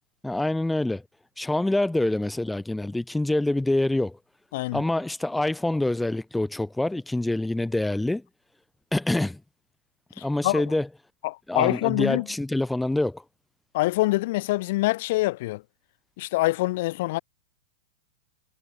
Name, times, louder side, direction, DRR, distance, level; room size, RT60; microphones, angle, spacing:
voice 1, 0.2-1.0 1.4-4.2 4.7-8.2 8.9-9.4 10.2-10.9 11.5-13.2, left 2 dB, 5° left, 3.4 m, -26 dB
voice 2, 11.2-12.3 13.7-15.6 16.2-17.2, left 19 dB, 50° left, 4.5 m, -25 dB
supercardioid pair, 160°, 0 cm